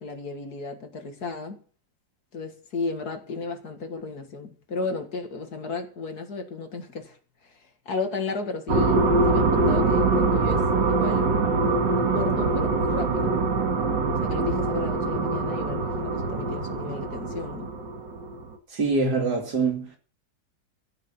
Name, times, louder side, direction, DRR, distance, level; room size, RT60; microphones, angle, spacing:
voice 1, 0.0-1.6 2.3-7.2 7.4-11.4 12.1-13.3 14.1-17.7, left 3 dB, 60° left, 2.4 m, -34 dB
sound 1, 8.7-18.5, right 3 dB, 85° right, 2.5 m, -24 dB
voice 2, 18.7-20.0, right 4 dB, 65° right, 3.3 m, -24 dB
15.0 x 6.9 x 7.1 m
omnidirectional pair, 1.9 m